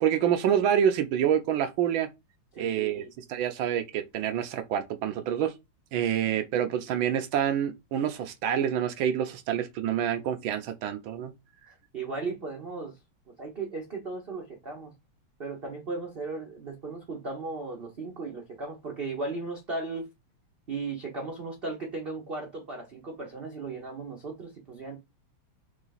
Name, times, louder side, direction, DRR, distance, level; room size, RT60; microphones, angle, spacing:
voice 1, 0.0-2.1 2.6-5.5 5.9-11.3, right 9 dB, 75° right, 1.3 m, -27 dB
voice 2, 2.6-3.1 11.9-12.9 13.4-14.9 15.4-20.1 20.7-25.0, right 3 dB, 55° right, 0.6 m, -36 dB
3.9 x 3.2 x 3.9 m
omnidirectional pair, 2.4 m